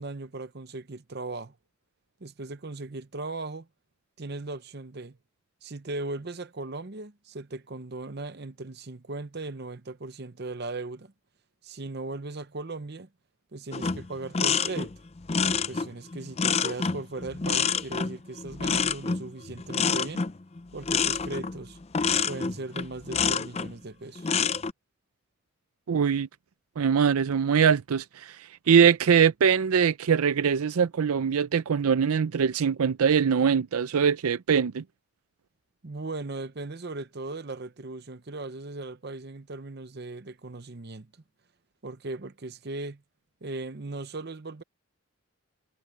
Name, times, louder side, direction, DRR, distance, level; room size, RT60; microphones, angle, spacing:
voice 1, 0.0-1.5 2.2-3.7 4.2-5.2 5.6-11.1 11.6-13.1 13.5-14.9 15.5-20.3 20.7-21.8 22.3-24.4 35.8-41.1 41.8-43.0 43.4-44.6, right 2 dB, 50° right, 0.8 m, -38 dB
sound 1, 13.7-23.7 24.2-24.7, left 6 dB, 30° left, 0.5 m, -27 dB
voice 2, 25.9-26.3 26.8-34.8, right 7 dB, 85° right, 0.5 m, -22 dB
head